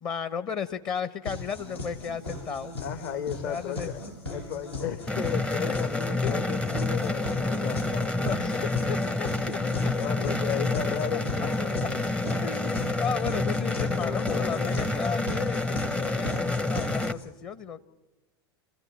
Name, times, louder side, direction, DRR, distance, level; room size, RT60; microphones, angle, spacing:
voice 1, 0.0-2.7 3.4-4.2 5.7-5.8 6.2-6.3 7.5-7.8 8.2-8.6 8.9-9.3 12.4-17.8, left 7 dB, 35° left, 11 dB, 1.2 m, -34 dB
sound 1, 1.2-17.2, left 2 dB, 85° left, 7.3 m, -37 dB
voice 2, 2.8-4.0 4.3-8.6 9.5-12.1 13.9-14.8 17.0-17.2, left 8 dB, 55° left, 9 dB, 1.6 m, -35 dB
sound 2, 5.1-17.1, left 2 dB, 10° left, 0.7 m, -28 dB
29.5 x 14.5 x 8.7 m, 1.1 s
figure-of-eight pair, 85°, 13 cm